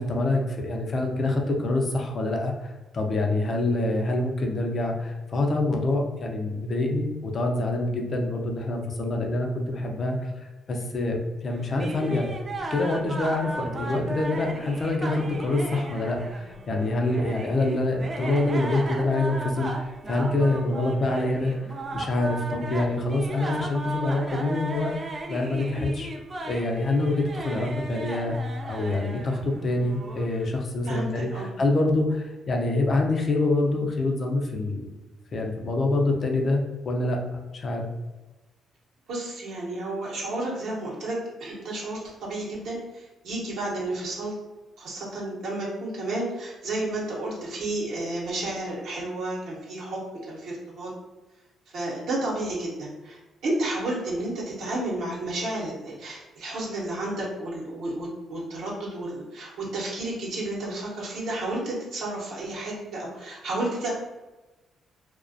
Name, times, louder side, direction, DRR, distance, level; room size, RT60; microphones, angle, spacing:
voice 1, 0.0-12.3 12.7-21.5 21.9-24.9 25.3-26.1 26.4-28.3 28.6-31.3 31.6-34.9 35.3-37.2 37.5-37.9, left 2 dB, 45° left, 2 dB, 0.5 m, -26 dB
sound 1, 11.5-30.5, right 2 dB, 35° right, 0.3 m, -36 dB
voice 2, 30.8-31.5 39.1-44.4 44.8-50.9 51.7-63.9, right 1 dB, 75° right, -4 dB, 0.8 m, -31 dB
2.3 x 2.1 x 2.5 m, 1.1 s
cardioid pair, 90°, 0 cm